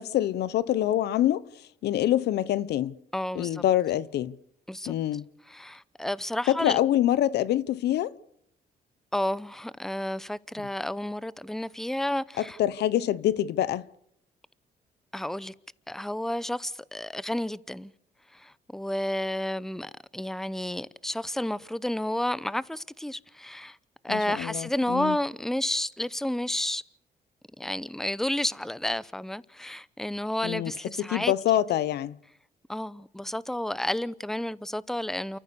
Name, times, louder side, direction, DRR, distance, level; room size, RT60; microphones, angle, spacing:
voice 1, 0.0-1.4 1.8-3.0 3.3-4.3 4.9-5.2 6.5-8.1 12.6-13.9 24.1-25.2 30.4-30.7 31.0-32.2, left 12 dB, 85° left, 0.8 m, -25 dB
voice 2, 3.1-3.6 4.7-4.9 5.5-6.8 9.1-12.6 15.1-15.5 15.9-17.9 18.3-23.8 24.0-26.8 27.6-31.3 32.7-35.4, left 1 dB, ahead, 0.7 m, -31 dB
29.0 x 14.5 x 6.8 m
cardioid pair, 80°, 17 cm